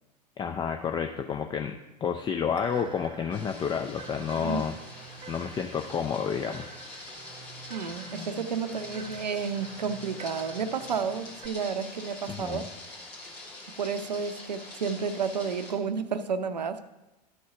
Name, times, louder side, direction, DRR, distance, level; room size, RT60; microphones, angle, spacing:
voice 1, 0.4-1.8 2.0-4.8 5.3-6.6 12.3-12.7, left 7 dB, 20° left, 5 dB, 0.5 m, -30 dB
sound 1, 2.5-11.5, right 3 dB, 20° right, 0.9 m, -47 dB
sound 2, 3.3-15.7, left 2 dB, 75° left, 2.7 m, -45 dB
voice 2, 4.4-4.7 7.7-12.6 13.8-16.9, right 6 dB, 80° right, 10 dB, 0.6 m, -31 dB
12.5 x 4.3 x 4.8 m, 1.0 s
figure-of-eight pair, 85°, 21 cm